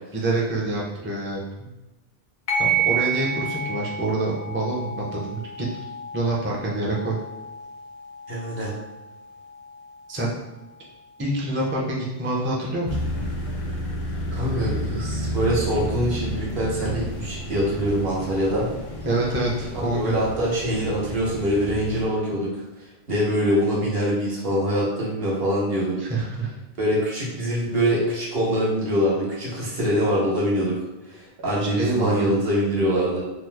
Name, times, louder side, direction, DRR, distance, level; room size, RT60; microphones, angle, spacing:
voice 1, 0.1-1.7 2.6-5.7 6.1-7.2 10.1-10.4 11.2-13.0 19.0-20.2 26.0-26.5 31.8-32.4, right 2 dB, 20° right, -4 dB, 0.3 m, -26 dB
sound 1, 2.5-11.5, right 5 dB, 80° left, 0.8 m, -31 dB
voice 2, 8.3-8.8 14.3-18.7 19.9-26.0 26.8-33.2, equal, 70° right, -5 dB, 1.2 m, -24 dB
sound 2, 12.9-22.0, equal, 45° left, 0.5 m, -31 dB
2.9 x 2.0 x 3.3 m, 1.0 s
omnidirectional pair, 1.0 m